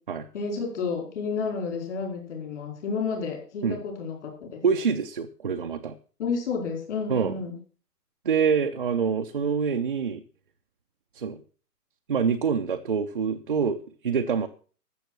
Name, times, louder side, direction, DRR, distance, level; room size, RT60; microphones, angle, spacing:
voice 1, 0.3-4.6 6.2-7.6, left 5 dB, 45° left, 2 dB, 4.7 m, -31 dB
voice 2, 4.6-5.9 7.1-7.3 8.2-10.2 11.1-11.4 12.1-13.8 14.0-14.5, right 6 dB, 35° right, 4 dB, 0.5 m, -25 dB
14.0 x 7.2 x 6.0 m, 0.40 s
hypercardioid pair, 165°, 47 cm